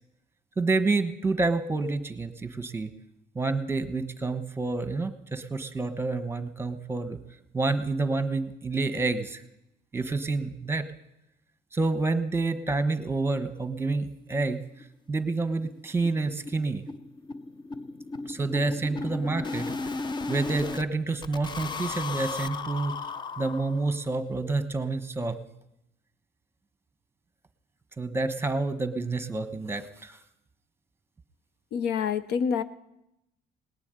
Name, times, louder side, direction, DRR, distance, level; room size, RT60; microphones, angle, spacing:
voice 1, 0.6-2.9 3.3-7.2 7.5-9.4 9.9-10.8 11.7-14.6 15.1-16.8 18.3-19.7 20.3-22.9 23.4-25.4 28.0-30.2, right 3 dB, 15° right, 10 dB, 1.2 m, -28 dB
sound 1, 14.0-14.1 14.4-14.5 14.8-14.9 15.2-15.4 15.6-20.8 21.2-24.0, left 3 dB, 25° left, 0.6 m, -35 dB
voice 2, 31.7-32.6, left 7 dB, 80° left, 14 dB, 0.8 m, -27 dB
19.0 x 7.1 x 9.7 m, 0.85 s
cardioid pair, 110°, 17 cm